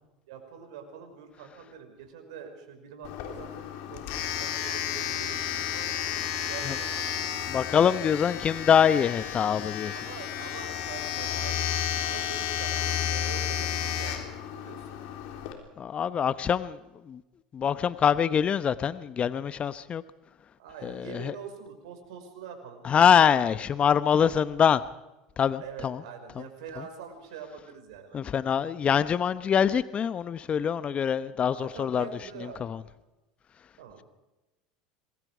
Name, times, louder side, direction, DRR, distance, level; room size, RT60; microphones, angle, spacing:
voice 1, 0.3-6.2 6.5-7.1 9.9-11.7 12.0-14.9 20.6-23.1 25.6-28.2 31.5-32.7 33.8-34.0, right 6 dB, 70° right, 6 dB, 5.5 m, -44 dB
Domestic sounds home sounds, 3.0-15.5, left 10 dB, 65° left, 3.8 m, -32 dB
voice 2, 7.5-9.9 15.8-16.8 17.0-17.2 17.5-20.0 20.8-21.3 22.8-24.8 25.4-26.0 28.1-32.1 32.6-32.8, left 8 dB, 35° left, 15 dB, 0.9 m, -24 dB
26.5 x 21.5 x 5.0 m, 1.0 s
hypercardioid pair, 80°, 3 cm